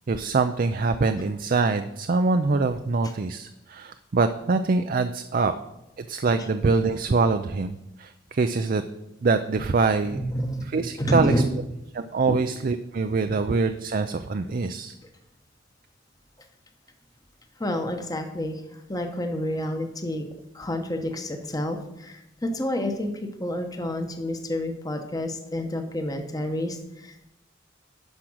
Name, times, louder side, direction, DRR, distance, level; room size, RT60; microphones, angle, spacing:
voice 1, 0.1-5.5 6.0-8.8 9.2-10.2 10.7-11.3 11.9-14.9, right 4 dB, 45° right, 8 dB, 0.4 m, -24 dB
voice 2, 10.1-11.5 12.3-12.4 13.3-13.4 15.0-15.1 17.6-20.2 20.5-27.3, equal, 20° left, 5 dB, 1.0 m, -29 dB
12.0 x 5.1 x 6.2 m, 0.89 s
head